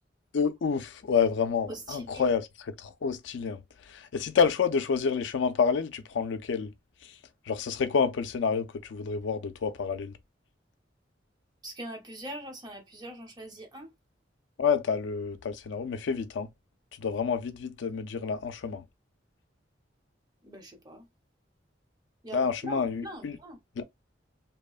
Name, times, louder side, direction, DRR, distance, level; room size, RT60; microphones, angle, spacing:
voice 1, 0.3-3.6 3.9-6.7 7.5-10.1 14.6-16.5 17.0-18.8 22.3-23.4 23.8-23.9, left 6 dB, 70° left, 0.4 m, -28 dB
voice 2, 1.7-2.3 11.6-13.9 20.4-21.1 22.2-23.6, right 1 dB, 20° right, 0.7 m, -42 dB
2.9 x 2.0 x 2.3 m
head